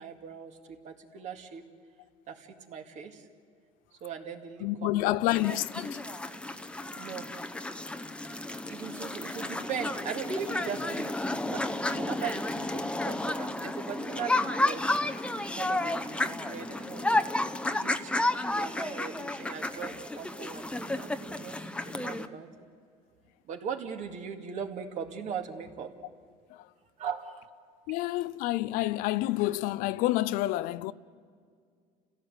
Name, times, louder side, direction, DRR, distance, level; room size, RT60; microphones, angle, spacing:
voice 1, 0.0-1.6 2.3-3.3 4.0-5.2 7.0-7.3 8.7-11.1 11.4-15.0 15.2-17.1 17.7-18.1 18.5-22.5 23.5-25.9 27.0-27.5, right 7 dB, 55° right, 2.2 m, -39 dB
voice 2, 4.6-6.0 27.9-30.9, left 16 dB, 75° left, 0.6 m, -28 dB
sound 1, 5.3-22.3, left 2 dB, 5° left, 0.8 m, -32 dB
30.0 x 16.0 x 8.0 m
supercardioid pair, 105°, 15 cm